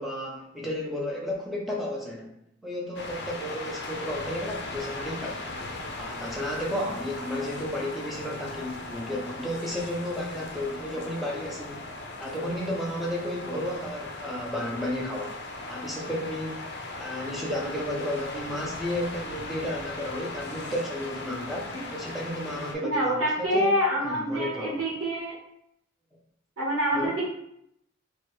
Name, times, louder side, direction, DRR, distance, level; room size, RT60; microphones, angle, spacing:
voice 1, 0.0-2.3 2.6-5.5 6.0-11.8 12.2-15.4 15.7-16.7 17.0-23.7 24.0-24.8 26.9-27.1, left 1 dB, ahead, -3 dB, 0.5 m, -33 dB
sound 1, 2.9-22.7, left 2 dB, 50° left, 0.5 m, -38 dB
voice 2, 22.8-25.3 26.6-27.3, equal, 80° right, -5 dB, 1.1 m, -26 dB
4.5 x 2.3 x 3.1 m, 0.77 s
head